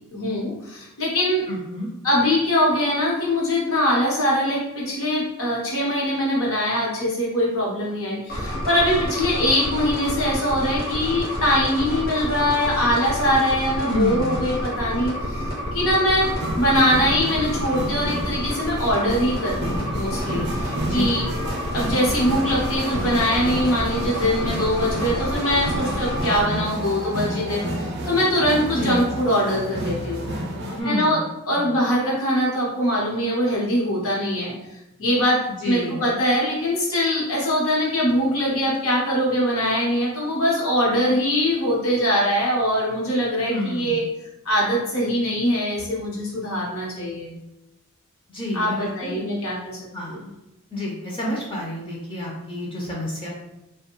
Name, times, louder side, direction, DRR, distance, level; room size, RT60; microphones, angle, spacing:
voice 1, 0.1-1.4 2.0-15.4 15.7-21.2 21.7-30.3 30.8-34.5 35.0-44.0 44.4-47.3 48.5-49.8 50.1-50.2, equal, 70° left, -4 dB, 0.9 m, -22 dB
voice 2, 1.5-1.9 13.8-14.6 20.7-21.4 28.7-29.1 30.6-31.2 31.5-31.8 35.6-36.0 43.4-44.1 48.3-49.3 49.9-50.3 50.7-53.3, left 1 dB, 25° left, -3 dB, 0.4 m, -30 dB
sound 1, 8.3-26.4, equal, 45° left, 0.8 m, -29 dB
sound 2, 16.1-30.8, right 1 dB, 55° right, 0.4 m, -31 dB
2.5 x 2.2 x 2.9 m, 0.94 s
head